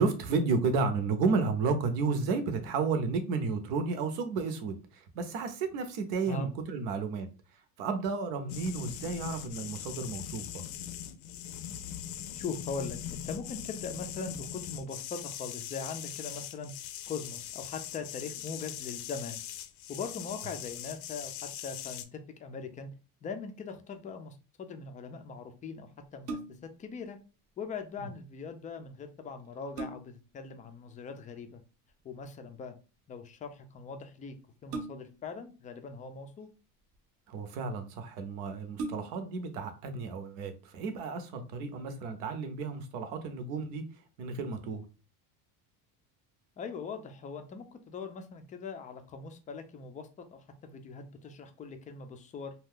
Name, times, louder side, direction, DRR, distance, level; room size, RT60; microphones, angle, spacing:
voice 1, 0.0-7.3 7.8-10.6 37.3-43.8 44.2-44.8, right 4 dB, 80° right, 0.9 m, -32 dB
sound 1, 8.5-22.0, left 11 dB, 85° left, 0.6 m, -41 dB
voice 2, 12.3-16.7 17.1-19.4 19.9-22.9 23.2-27.2 27.6-31.6 32.0-32.8 33.1-34.4 34.6-36.5 46.6-52.5, left 4 dB, 20° left, 0.3 m, -41 dB
sound 2, 26.2-26.8 28.8-28.9 29.4-30.3 31.9-32.2 34.7-35.3 36.3-37.0 37.7-37.8 38.1-38.2 38.7-39.4 39.9-40.0, right 3 dB, 35° right, 0.6 m, -40 dB
2.6 x 2.3 x 3.5 m
cardioid pair, 130°, 42 cm